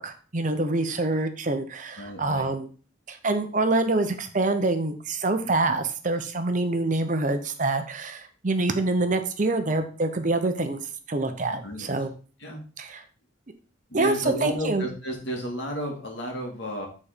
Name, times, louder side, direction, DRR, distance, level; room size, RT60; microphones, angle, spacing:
voice 1, 0.0-2.7 3.1-10.8 11.1-12.1 12.8-13.0 13.9-14.9, right 2 dB, 40° right, 8 dB, 0.7 m, -26 dB
voice 2, 2.0-2.5 5.4-5.8 11.6-11.9 12.4-12.6 13.9-16.9, equal, 65° left, 0 dB, 2.3 m, -33 dB
6.9 x 4.2 x 5.1 m, 0.39 s
head